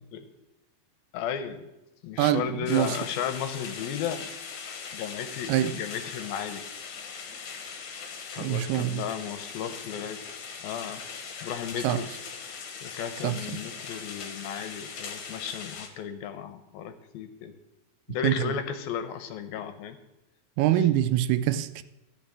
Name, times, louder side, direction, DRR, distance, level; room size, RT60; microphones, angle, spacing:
voice 1, 1.1-1.6 2.0-4.3 4.9-6.6 8.1-10.2 10.6-11.0 11.3-12.1 12.8-17.5 18.1-20.0, left 8 dB, 75° left, 2.5 m, -34 dB
voice 2, 2.2-3.0 5.5-5.7 8.4-9.0 11.8-12.0 13.2-13.6 18.2-18.3 20.6-21.8, right 12 dB, 80° right, 2.6 m, -25 dB
sound 1, 2.7-15.9, left 6 dB, 60° left, 2.4 m, -40 dB
14.0 x 6.0 x 8.6 m
omnidirectional pair, 4.6 m